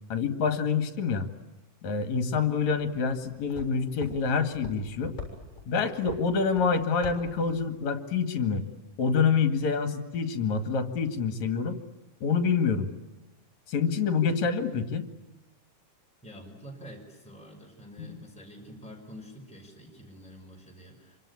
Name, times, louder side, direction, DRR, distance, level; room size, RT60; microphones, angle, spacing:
voice 1, 0.1-1.3 1.8-5.1 5.7-8.6 9.0-11.8 12.2-12.9 13.7-15.1 18.0-18.2, left 5 dB, 65° left, 9 dB, 3.3 m, -27 dB
sound 1, 3.0-7.8, left 4 dB, 25° left, 7.3 m, -45 dB
voice 2, 16.2-21.2, equal, ahead, 0 dB, 5.8 m, -47 dB
26.5 x 25.5 x 8.6 m, 1.0 s
omnidirectional pair, 3.5 m